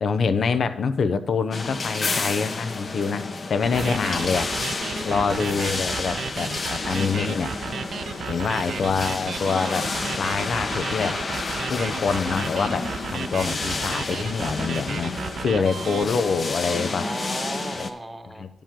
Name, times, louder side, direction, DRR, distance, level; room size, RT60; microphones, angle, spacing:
voice 1, 0.0-4.5 5.0-7.5 8.3-9.9 10.2-11.2 11.7-17.0 17.7-17.9 18.4-18.5, left 5 dB, 65° left, 11 dB, 0.7 m, -25 dB
sound 1, 1.5-17.9, left 3 dB, 50° left, 1.0 m, -30 dB
voice 2, 3.6-4.1 5.1-5.4 8.3-8.9 15.5-15.7 17.0-18.4, right 1 dB, 15° right, 6 dB, 1.1 m, -37 dB
sound 2, 3.7-16.0, right 7 dB, 75° right, 0.3 m, -34 dB
10.5 x 8.7 x 3.7 m, 0.83 s
wide cardioid pair, 115°, 0 cm